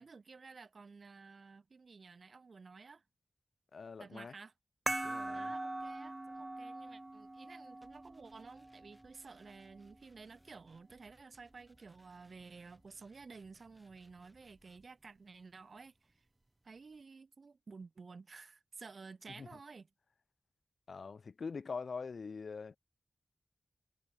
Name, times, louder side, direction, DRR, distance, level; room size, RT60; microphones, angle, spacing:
voice 1, 0.0-3.0 4.0-4.5 5.3-16.3 16.6-19.9, right 4 dB, 65° right, 0.8 m, -53 dB
voice 2, 3.7-4.3 5.0-5.5 19.4-19.5 20.9-22.8, left 5 dB, 75° left, 0.8 m, -43 dB
sound 1, 4.9-9.9, right 2 dB, 30° right, 0.7 m, -42 dB
sound 2, 7.8-14.9, equal, ahead, 6.2 m, -69 dB
cardioid pair, 50°, 0 cm